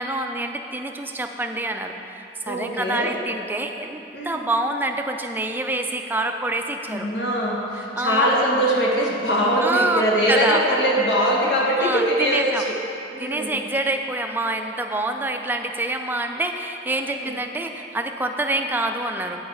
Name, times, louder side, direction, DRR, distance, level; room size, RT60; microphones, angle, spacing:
voice 1, 0.0-7.1 8.0-8.3 9.6-10.0 10.3-10.6 11.8-12.6 13.2-19.4, right 2 dB, 10° right, 4 dB, 0.3 m, -26 dB
voice 2, 2.5-3.1 4.1-4.4 6.9-12.8 13.1-13.6 17.0-17.3, equal, 75° left, -3 dB, 1.4 m, -22 dB
8.6 x 4.9 x 5.4 m, 2.8 s
head